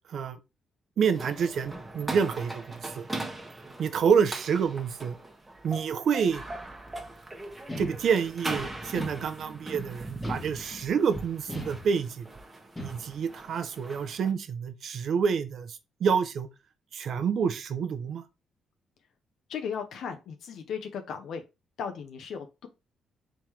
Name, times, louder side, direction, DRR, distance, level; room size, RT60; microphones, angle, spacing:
voice 1, 0.1-0.4 1.0-3.1 3.8-5.2 5.6-6.4 7.8-12.2 12.8-16.5 16.9-18.2, right 6 dB, 60° right, 0.7 m, -28 dB
sound 1, 1.1-14.3, right 2 dB, 15° right, 1.0 m, -40 dB
sound 2, 7.7-8.5 8.9-9.7 10.2-11.0 11.5-12.3 12.8-13.4, left 1 dB, 15° left, 1.3 m, -39 dB
voice 2, 19.5-21.4 21.8-22.7, left 7 dB, 70° left, 0.6 m, -36 dB
3.6 x 3.1 x 4.4 m
cardioid pair, 90°, 0 cm